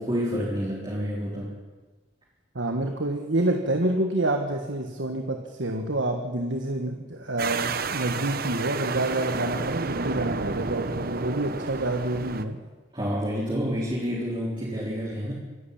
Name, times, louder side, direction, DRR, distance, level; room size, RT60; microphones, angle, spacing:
voice 1, 0.0-1.6 12.9-15.3, equal, 25° right, -5 dB, 4.1 m, -29 dB
voice 2, 2.5-12.6, right 1 dB, 70° right, 4 dB, 1.6 m, -28 dB
sound 1, 7.4-12.4, right 4 dB, 50° right, 1.1 m, -31 dB
26.0 x 11.5 x 8.7 m, 1.3 s
head